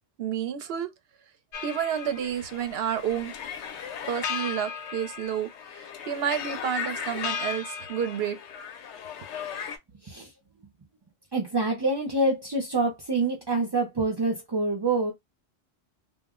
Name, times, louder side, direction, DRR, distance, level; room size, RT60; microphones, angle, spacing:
voice 1, 0.2-0.9 1.6-3.3 4.1-5.5 5.8-8.4, right 9 dB, 70° right, 0.8 m, -30 dB
sound 1, 1.5-9.8, left 7 dB, 85° left, 0.9 m, -36 dB
voice 2, 11.3-15.1, right 2 dB, 35° right, 0.4 m, -26 dB
2.2 x 2.0 x 3.5 m
omnidirectional pair, 1.1 m